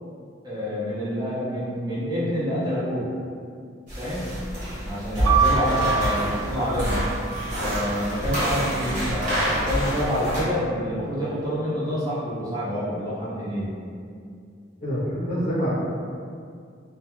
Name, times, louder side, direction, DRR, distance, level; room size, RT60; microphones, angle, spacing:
voice 1, 0.4-3.1 4.0-4.4 4.8-7.0 7.6-13.8, equal, 20° right, -10 dB, 0.6 m, -27 dB
sound 1, 3.9-10.4, equal, 45° right, 1.1 m, -27 dB
sound 2, 5.2-9.1 9.9-10.6, right 6 dB, 80° right, 0.4 m, -28 dB
voice 2, 14.8-15.7, equal, 40° left, -7 dB, 0.6 m, -26 dB
2.2 x 2.2 x 2.9 m, 2.3 s
head